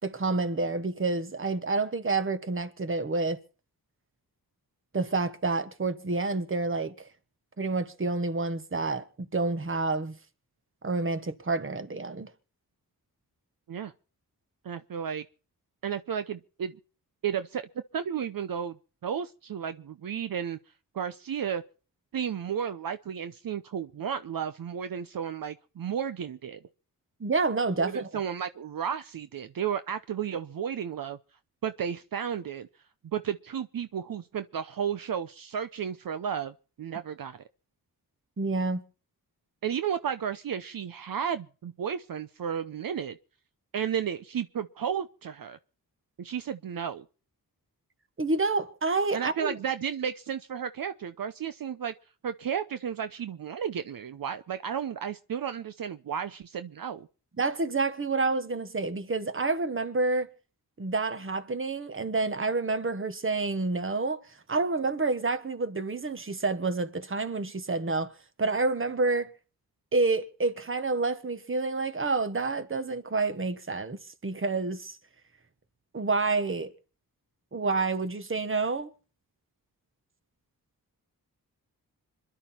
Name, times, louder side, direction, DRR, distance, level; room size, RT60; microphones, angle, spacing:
voice 1, 0.0-3.4 4.9-7.1 7.6-10.2 10.8-12.3 27.2-28.1 38.4-38.8 48.2-49.5 57.4-60.3 60.8-64.2 64.5-68.1 68.4-69.3 69.9-75.0 75.9-76.7 77.5-78.9, right 3 dB, 35° right, 1.5 m, -28 dB
voice 2, 14.6-15.2 15.8-16.8 17.2-18.8 19.0-20.6 20.9-21.6 22.1-26.6 27.8-31.2 31.6-32.7 33.0-37.4 39.6-43.2 43.7-45.6 46.2-47.0 49.1-51.9 52.2-57.1, right 8 dB, 65° right, 0.8 m, -33 dB
26.0 x 11.0 x 4.4 m
wide cardioid pair, 105°, 37 cm